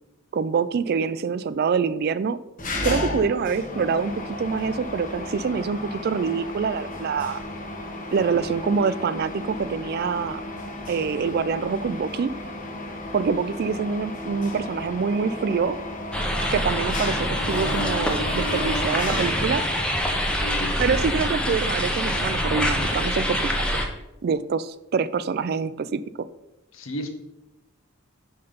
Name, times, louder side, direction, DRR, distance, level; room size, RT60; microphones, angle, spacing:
voice 1, 0.3-2.4 2.8-7.4 8.1-10.4 10.9-12.3 13.1-15.8 16.5-19.6 20.8-23.8 24.2-26.3, right 5 dB, 50° right, 16 dB, 0.3 m, -25 dB
Mechanisms, 2.6-20.0, left 1 dB, 40° left, 1.2 m, -33 dB
sound 1, 16.1-23.8, equal, 5° left, 0.8 m, -25 dB
voice 2, 20.3-21.3 26.7-27.1, equal, 75° left, 6 dB, 1.1 m, -35 dB
5.8 x 5.3 x 5.1 m, 0.92 s
head